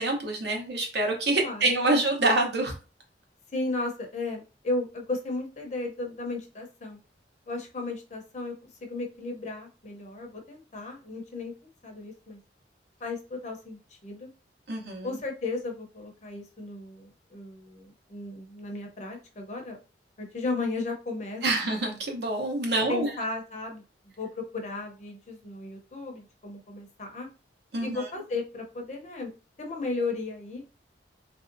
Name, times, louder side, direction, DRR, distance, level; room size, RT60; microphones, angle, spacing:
voice 1, 0.0-2.7 14.7-15.2 21.4-23.1 27.7-28.0, right 2 dB, 65° right, 1 dB, 0.9 m, -26 dB
voice 2, 3.5-7.0 7.5-11.5 11.8-12.4 13.0-14.3 15.0-19.8 20.2-21.4 22.9-23.8 24.2-27.3 27.8-29.3 29.6-30.6, left 3 dB, 40° left, 2 dB, 0.7 m, -35 dB
3.2 x 2.6 x 2.6 m, 0.33 s
head